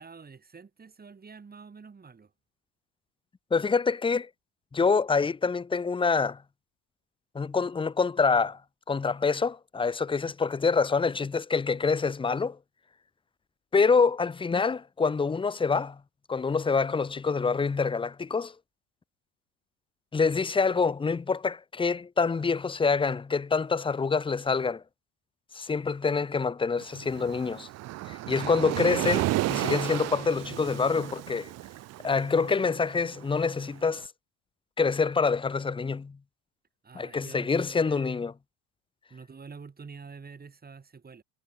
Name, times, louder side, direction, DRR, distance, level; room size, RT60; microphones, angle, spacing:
voice 1, 0.0-2.3 36.8-38.2 39.1-41.2, right 5 dB, 20° right, 2.6 m, -47 dB
voice 2, 3.5-4.3 4.7-6.4 7.3-8.6 8.9-12.6 13.7-16.0 16.3-18.5 20.1-24.8 25.5-27.7 28.1-31.5 32.0-34.1 34.8-36.2 36.9-38.3, left 5 dB, 10° left, 0.6 m, -26 dB
Waves surf, 26.8-33.9, right 17 dB, 35° right, 0.4 m, -33 dB
supercardioid pair, 100°, 48 cm